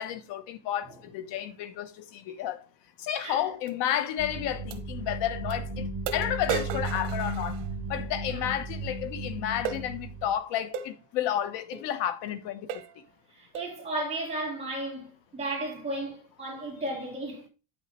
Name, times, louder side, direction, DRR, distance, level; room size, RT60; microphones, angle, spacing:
voice 1, 0.0-2.6 3.0-12.8, left 11 dB, 80° left, 1.1 m, -32 dB
sound 1, 3.7-3.8 4.7-4.8 5.5-5.6 6.1-8.0 9.7-9.9 10.7-10.9 11.7-11.9 12.3-12.4 12.7-13.0 13.6-13.8, right 7 dB, 75° right, 1.3 m, -35 dB
sound 2, 4.2-10.3, right 2 dB, 30° right, 1.2 m, -35 dB
voice 2, 13.3-17.5, right 1 dB, 15° right, 3.6 m, -34 dB
9.1 x 6.4 x 3.1 m
cardioid pair, 160°, 42 cm